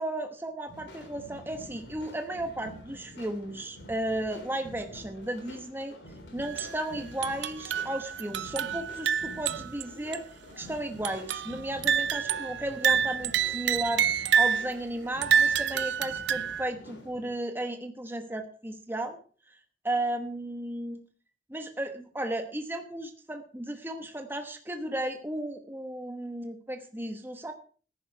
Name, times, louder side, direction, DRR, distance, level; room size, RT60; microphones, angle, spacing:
voice 1, 0.0-5.9 6.3-10.2 10.6-19.2 19.5-19.6 19.8-21.0 21.5-27.5, right 1 dB, 10° right, 6 dB, 1.1 m, -34 dB
sound 1, 0.7-17.3, equal, 65° left, 3.7 m, -48 dB
sound 2, 6.4-6.8 7.2-9.8 10.1-10.2 11.0-11.5 11.8-14.7 15.2-16.7, right 8 dB, 65° right, 0.6 m, -27 dB
14.0 x 10.5 x 4.6 m, 0.40 s
head